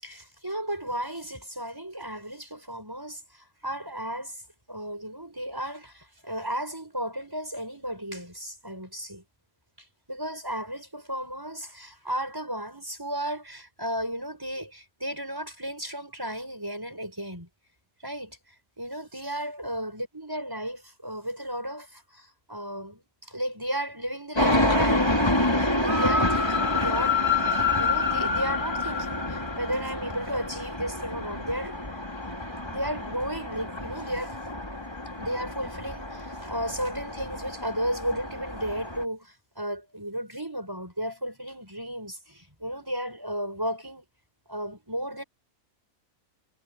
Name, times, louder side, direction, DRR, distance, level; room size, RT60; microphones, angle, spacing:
voice 1, 0.0-4.4 4.7-9.2 10.1-17.5 18.0-18.4 18.8-31.8 32.7-34.4 35.2-44.1 44.5-45.2, equal, 15° right, 6.7 m, -34 dB
sound 1, 24.3-39.0, left 2 dB, 20° left, 2.9 m, -27 dB
omnidirectional pair, 1.5 m